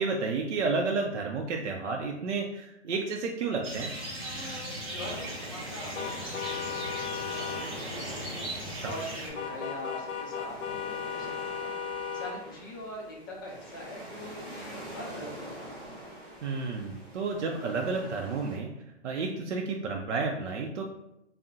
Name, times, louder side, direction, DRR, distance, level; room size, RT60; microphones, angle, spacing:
voice 1, 0.0-3.9 8.7-8.9 16.4-18.7 19.0-20.8, right 4 dB, 75° right, 2 dB, 0.5 m, -31 dB
sound 1, 3.6-9.3, right 1 dB, 20° right, 0.8 m, -38 dB
voice 2, 4.9-11.7 12.1-15.9, left 1 dB, 20° left, -2 dB, 0.4 m, -43 dB
sound 2, 4.9-18.6, equal, ahead, 1.4 m, -44 dB
sound 3, 5.9-7.7 9.4-12.4, left 7 dB, 90° left, 0.5 m, -35 dB
3.4 x 2.0 x 2.6 m, 0.86 s
hypercardioid pair, 135°, 35 cm